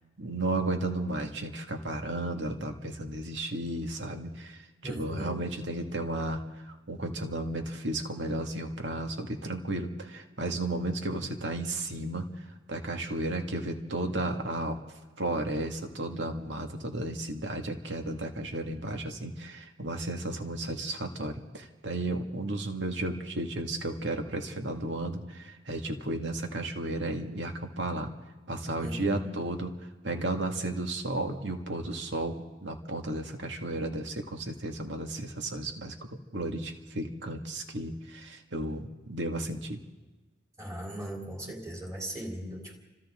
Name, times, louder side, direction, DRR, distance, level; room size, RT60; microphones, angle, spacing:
voice 1, 0.2-6.4 6.7-12.3 12.7-14.8 15.2-28.1 28.5-29.7 30.0-32.4 32.6-35.9 36.3-39.8, right 2 dB, 80° right, 4 dB, 2.1 m, -33 dB
voice 2, 4.8-5.4 28.8-29.3 40.6-42.8, equal, 20° right, -1 dB, 3.7 m, -38 dB
30.0 x 26.0 x 3.8 m, 1.2 s
head